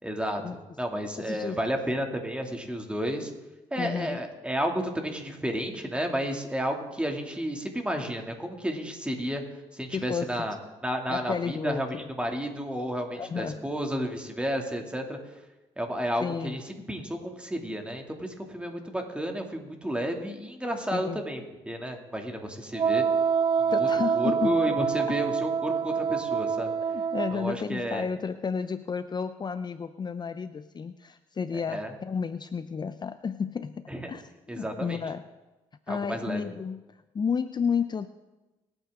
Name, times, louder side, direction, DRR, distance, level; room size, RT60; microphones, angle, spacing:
voice 1, 0.0-3.3 3.7-9.4 9.7-10.6 10.8-15.2 15.8-21.4 21.7-23.0 23.6-23.9 24.1-26.7 27.3-28.1 31.7-31.9 33.9-34.1 34.5-35.0 35.9-36.4, equal, 10° right, 3 dB, 2.5 m, -32 dB
voice 2, 1.2-1.6 3.8-4.2 9.9-10.3 11.1-11.8 13.1-13.6 16.2-16.6 20.9-21.2 23.7-24.6 25.1-25.2 26.9-35.2 35.9-36.8 37.1-38.1, left 6 dB, 35° left, 12 dB, 0.6 m, -32 dB
Wind instrument woodwind instrument, 22.7-27.5, right 6 dB, 40° right, 0.4 m, -26 dB
24.5 x 9.0 x 3.7 m, 1.1 s
cardioid pair, 75°, 13 cm